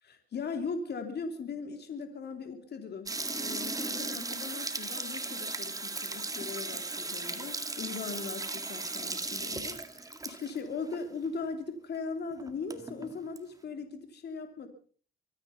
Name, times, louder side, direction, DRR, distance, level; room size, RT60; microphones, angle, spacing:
voice 1, 0.0-14.7, left 4 dB, 55° left, 7 dB, 2.9 m, -39 dB
sound 1, 3.1-10.6 10.9-11.0 11.3-11.4 11.9-12.0 12.3-13.4, right 3 dB, 15° right, 2.0 m, -37 dB
24.5 x 9.7 x 5.7 m, 0.44 s
cardioid pair, 90°, 20 cm